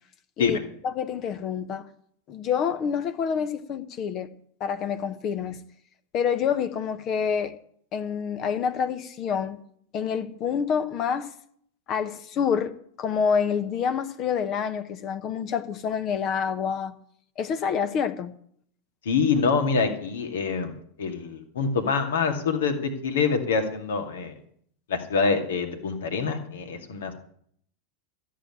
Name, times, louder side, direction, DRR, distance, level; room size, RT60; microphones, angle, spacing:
voice 1, 0.8-1.9 2.3-4.3 4.6-5.6 6.1-7.5 7.9-9.6 9.9-11.3 11.9-16.9 17.4-18.3, left 7 dB, 40° left, 1.1 m, -27 dB
voice 2, 19.0-24.3 24.9-27.1, left 5 dB, 65° left, 2.2 m, -25 dB
13.5 x 7.6 x 8.8 m
figure-of-eight pair, 85°, 0 cm